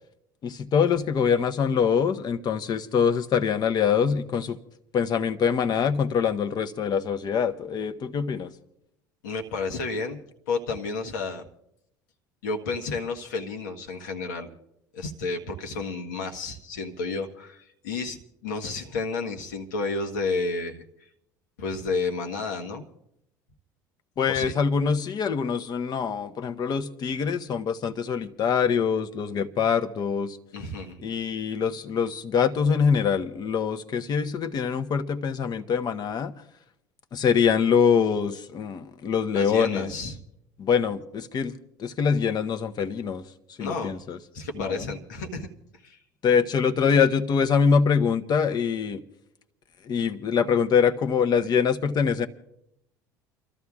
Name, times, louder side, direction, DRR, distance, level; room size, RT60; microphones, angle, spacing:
voice 1, 0.4-4.6 4.9-8.5 24.2-30.4 31.0-36.3 37.1-39.9 40.6-44.2 44.5-44.9 46.2-49.0 49.8-52.3, left 6 dB, 45° left, 1.0 m, -24 dB
voice 2, 9.2-10.2 10.5-11.5 12.4-14.5 14.9-20.8 21.6-22.8 24.3-24.5 30.5-31.0 39.3-40.2 43.6-43.9 44.3-45.5 45.8-46.0, left 3 dB, 75° left, 1.4 m, -31 dB
30.0 x 13.0 x 2.4 m
hypercardioid pair, 70°, 10 cm